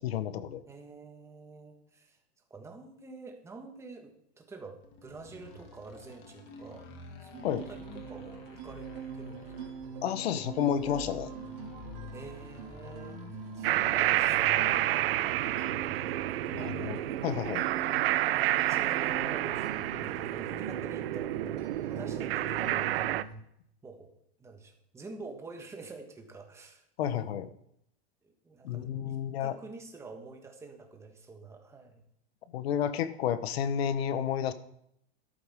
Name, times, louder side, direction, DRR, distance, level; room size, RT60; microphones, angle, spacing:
voice 1, 0.0-0.6 7.4-7.6 10.0-11.3 16.5-17.7 27.0-27.5 28.6-29.6 32.5-34.5, left 9 dB, 70° left, 12 dB, 1.2 m, -31 dB
voice 2, 0.7-2.2 2.5-6.9 7.2-9.4 12.1-14.7 15.0-15.3 16.5-17.0 17.9-18.3 18.5-23.0 23.8-24.1 24.4-27.2 28.4-32.0, right 3 dB, 10° right, 4 dB, 1.4 m, -48 dB
sound 1, 4.8-15.6, left 5 dB, 35° left, 2.0 m, -50 dB
sound 2, 7.3-23.3, right 4 dB, 45° right, 2.8 m, -43 dB
sound 3, 13.6-23.2, right 15 dB, 65° right, 0.6 m, -29 dB
13.0 x 12.0 x 3.7 m, 0.73 s
supercardioid pair, 165°, 32 cm